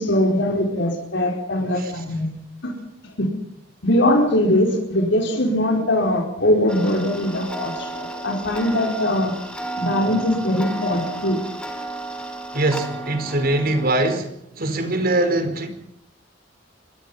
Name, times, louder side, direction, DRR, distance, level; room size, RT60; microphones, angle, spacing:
voice 1, 0.0-2.3 2.6-2.7 3.2-3.3 3.8-9.3 9.8-11.4, left 1 dB, 65° left, 5.0 m, -21 dB
Tick-tock, 6.7-13.9, right 2 dB, 5° left, 4.8 m, -33 dB
voice 2, 12.5-15.7, right 2 dB, 50° right, 5.0 m, -22 dB
26.0 x 24.0 x 5.8 m
head